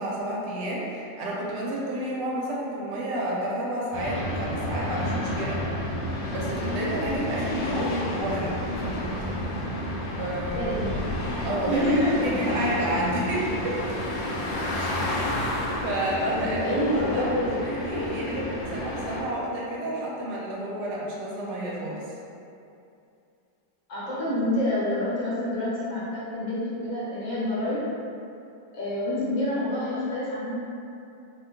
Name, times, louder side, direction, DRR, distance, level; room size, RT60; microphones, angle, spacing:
voice 1, 0.0-5.6 6.3-8.5 10.2-10.7 11.4-13.8 14.7-15.0 15.5-22.0, right 1 dB, 80° right, -5 dB, 1.2 m, -30 dB
sound 1, 3.9-19.2, left 1 dB, 80° left, 1.2 m, -30 dB
voice 2, 10.5-10.9 11.7-12.3 16.3-17.5 23.9-27.8 28.7-30.6, left 1 dB, 60° left, -8 dB, 1.1 m, -27 dB
2.9 x 2.2 x 3.4 m, 2.6 s
omnidirectional pair, 1.9 m